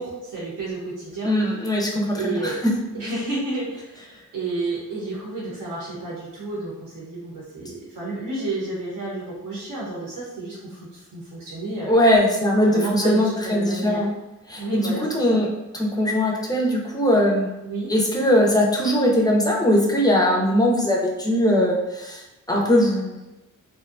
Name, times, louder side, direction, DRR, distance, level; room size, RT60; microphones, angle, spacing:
voice 1, 0.0-1.3 2.1-2.6 2.9-11.9 12.7-14.0 14.6-15.4 17.6-17.9, right 2 dB, 75° right, -6 dB, 0.8 m, -31 dB
voice 2, 1.2-2.5 11.9-14.1 14.5-15.5 15.7-17.5 17.9-23.2, left 1 dB, 10° left, -2 dB, 0.4 m, -20 dB
2.5 x 2.1 x 2.4 m, 1.0 s
wide cardioid pair, 120°, 32 cm